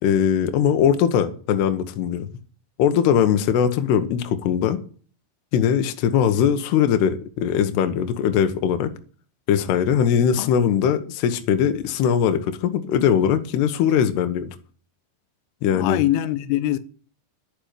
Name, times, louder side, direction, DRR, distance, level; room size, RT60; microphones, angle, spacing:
voice 1, 0.0-2.3 2.8-4.8 5.5-8.9 9.5-14.5 15.6-16.0, left 8 dB, 70° left, 3.0 m, -20 dB
voice 2, 15.7-16.8, left 14 dB, 90° left, 3.3 m, -23 dB
9.9 x 6.7 x 9.1 m
omnidirectional pair, 5.5 m